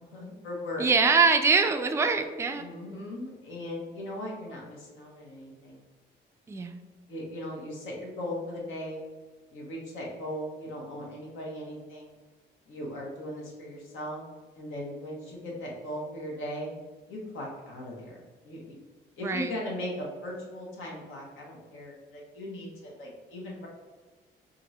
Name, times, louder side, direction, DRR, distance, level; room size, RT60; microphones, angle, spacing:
voice 1, 0.0-0.8 2.6-5.8 7.1-9.0 9.5-12.1 12.7-14.2 14.5-16.7 17.1-18.8 19.2-23.7, left 1 dB, 80° left, -2 dB, 1.1 m, -38 dB
voice 2, 0.8-2.7 6.5-6.8 19.2-19.5, right 4 dB, 15° right, 6 dB, 0.3 m, -23 dB
2.8 x 2.5 x 4.1 m, 1.3 s
cardioid pair, 90°, 20 cm